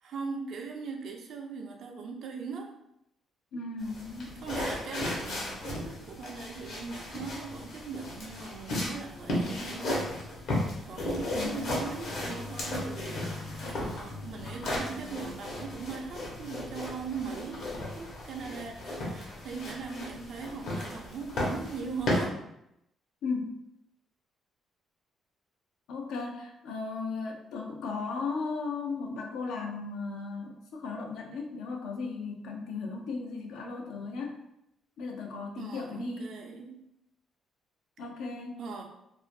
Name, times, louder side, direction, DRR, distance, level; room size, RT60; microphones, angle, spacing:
voice 1, 0.0-2.7 4.4-10.1 10.5-17.6 18.0-22.4 35.6-36.8 38.6-38.8, right 5 dB, 70° right, 2 dB, 0.5 m, -40 dB
voice 2, 3.5-4.4 11.3-11.7 23.2-23.6 25.9-34.4 35.0-36.3 38.0-38.6, left 4 dB, 85° left, 1 dB, 0.5 m, -36 dB
sound 1, 3.8-22.3, left 1 dB, 70° left, 0.9 m, -35 dB
2.6 x 2.0 x 3.2 m, 0.82 s
cardioid pair, 90°, 0 cm